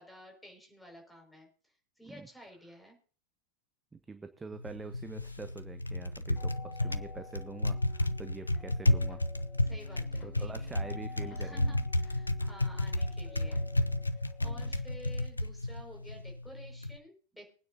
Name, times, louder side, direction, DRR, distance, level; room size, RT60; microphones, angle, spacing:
voice 1, 0.0-1.5 2.0-3.0 9.6-10.7 11.3-13.7 14.1-17.5, equal, 5° left, 1 dB, 5.6 m, -52 dB
voice 2, 3.9-9.2 10.2-11.8 14.4-14.8, right 4 dB, 10° right, 9 dB, 1.0 m, -45 dB
Typing, 4.5-17.0, left 1 dB, 85° left, 0.7 m, -32 dB
sound 1, 6.4-15.2, left 4 dB, 40° left, 2.2 m, -52 dB
24.0 x 9.4 x 2.8 m, 0.39 s
figure-of-eight pair, 90°, 0 cm